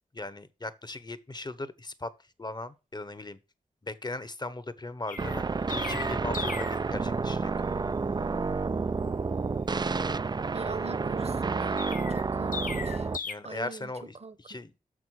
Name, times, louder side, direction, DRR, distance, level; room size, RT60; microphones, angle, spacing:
voice 1, 0.1-2.1 2.4-3.4 3.8-5.5 5.7-7.5 13.2-14.7, left 2 dB, 30° left, 1.0 m, -38 dB
Chirp tweet, 5.1-6.9 11.8-13.3, left 5 dB, 85° left, 0.8 m, -37 dB
sound 1, 5.2-13.2, right 4 dB, 30° right, 0.4 m, -30 dB
voice 2, 10.5-13.1 13.4-13.9 14.2-14.6, right 4 dB, 50° right, 1.1 m, -42 dB
6.7 x 6.3 x 6.3 m
cardioid pair, 45°, 14 cm